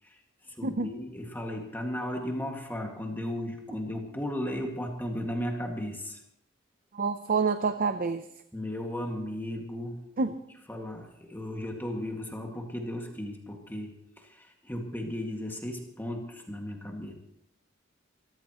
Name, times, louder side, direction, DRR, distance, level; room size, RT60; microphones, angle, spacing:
voice 1, 0.0-6.2 8.5-10.1 10.7-17.1, left 1 dB, 10° left, 1 dB, 2.0 m, -35 dB
voice 2, 6.9-8.3 10.2-10.4, right 4 dB, 45° right, 10 dB, 0.6 m, -27 dB
25.0 x 14.0 x 3.1 m, 0.78 s
head